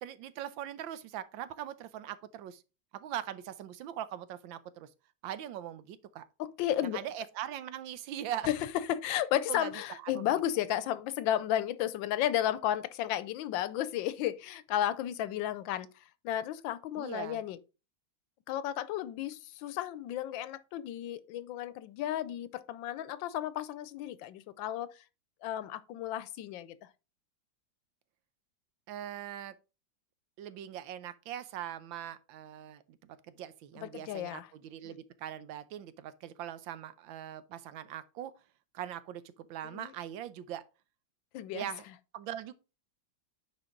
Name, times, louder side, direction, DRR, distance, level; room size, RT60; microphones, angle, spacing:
voice 1, 0.0-2.6 2.9-4.9 5.2-6.2 6.9-8.5 9.5-10.3 17.0-17.4 28.9-29.5 30.4-38.3 38.7-40.6 41.5-41.8 42.1-42.5, right 11 dB, 85° right, 1.4 m, -41 dB
voice 2, 6.4-7.0 8.4-15.9 16.2-17.6 18.5-25.0 25.4-26.8 33.8-34.5 34.9-35.0 39.7-39.9 41.3-41.7, left 11 dB, 80° left, 1.3 m, -33 dB
9.7 x 4.2 x 3.7 m
omnidirectional pair, 2.1 m